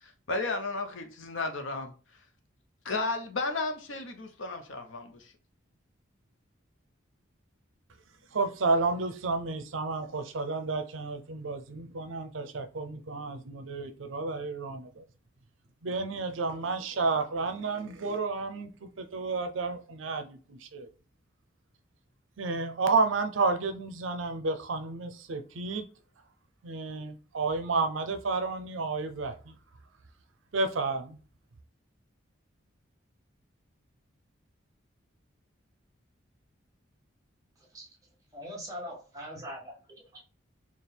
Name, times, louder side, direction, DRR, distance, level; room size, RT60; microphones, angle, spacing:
voice 1, 0.0-1.9 2.8-5.3, left 3 dB, 80° left, 0.8 m, -33 dB
voice 2, 8.3-15.0 15.8-18.7 19.0-20.9 22.4-25.8 26.6-29.5 30.5-31.2, right 3 dB, 75° right, 0.6 m, -31 dB
voice 3, 37.6-37.9 38.3-40.2, equal, 15° right, 1.1 m, -42 dB
4.4 x 2.4 x 3.4 m
head